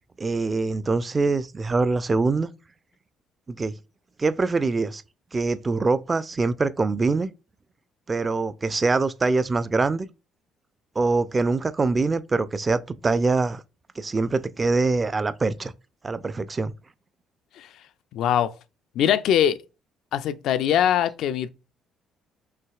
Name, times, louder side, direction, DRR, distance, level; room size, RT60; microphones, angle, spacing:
voice 1, 0.2-2.5 3.5-3.7 4.2-5.0 5.3-7.3 8.1-10.1 11.0-13.6 14.0-15.7 16.0-16.7, right 3 dB, 30° right, 0.4 m, -24 dB
voice 2, 18.1-18.5 19.0-19.6 20.1-21.5, left 10 dB, 60° left, 0.3 m, -22 dB
5.7 x 2.8 x 2.4 m
figure-of-eight pair, 50°, 0 cm